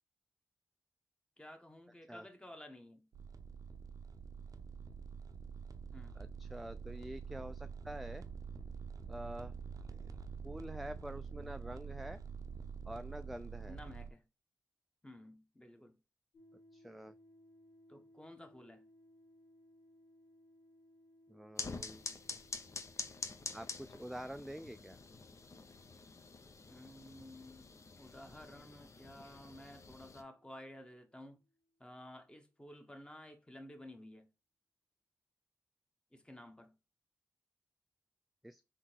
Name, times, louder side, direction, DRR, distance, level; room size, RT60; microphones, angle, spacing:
voice 1, 1.4-3.1 5.9-6.2 13.6-14.2 15.0-15.9 17.9-18.8 26.7-27.7 28.0-31.4 31.8-34.2 36.1-36.7, left 1 dB, 15° left, 1.1 m, -53 dB
sound 1, 3.1-14.1, right 5 dB, 65° right, 0.5 m, -47 dB
voice 2, 6.2-8.2 9.1-9.5 10.4-12.2 12.9-13.8 16.7-17.1 21.3-22.0 23.5-25.0 38.4-38.6, equal, ahead, 0.3 m, -46 dB
sound 2, 16.3-31.9, left 1 dB, 85° left, 1.3 m, -66 dB
sound 3, 21.6-30.2, left 4 dB, 50° left, 0.7 m, -47 dB
3.6 x 2.9 x 4.4 m
supercardioid pair, 45°, 6 cm